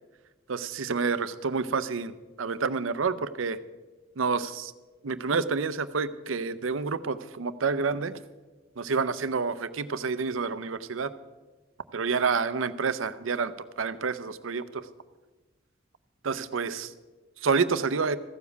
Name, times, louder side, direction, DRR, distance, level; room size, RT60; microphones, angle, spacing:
voice 1, 0.5-3.6 4.2-4.7 5.0-8.2 8.8-11.1 11.9-14.9 16.2-16.9 17.4-18.2, right 5 dB, 80° right, 14 dB, 0.6 m, -28 dB
15.0 x 7.2 x 8.1 m, 1.2 s
head